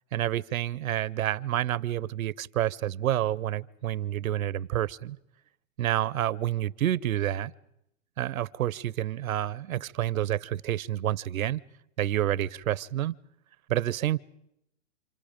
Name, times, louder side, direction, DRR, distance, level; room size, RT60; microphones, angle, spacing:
voice 1, 0.1-5.2 5.8-7.5 8.2-11.6 12.0-13.1 13.7-14.2, right 12 dB, 85° right, 0.8 m, -29 dB
28.0 x 27.5 x 5.1 m
hypercardioid pair, 135°, 40 cm